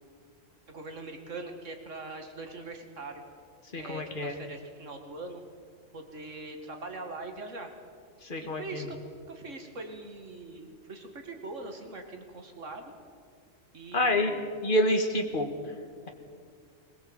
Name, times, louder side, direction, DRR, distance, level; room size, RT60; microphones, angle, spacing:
voice 1, 0.7-3.2 3.7-5.4 5.9-7.7 8.4-9.0 9.3-12.9 13.7-14.5, right 2 dB, 70° right, 5 dB, 2.4 m, -42 dB
voice 2, 3.7-4.3 8.2-8.8 13.9-14.3 14.6-15.5, left 1 dB, 40° left, 5 dB, 2.0 m, -27 dB
21.0 x 17.5 x 8.1 m, 2.2 s
omnidirectional pair, 1.3 m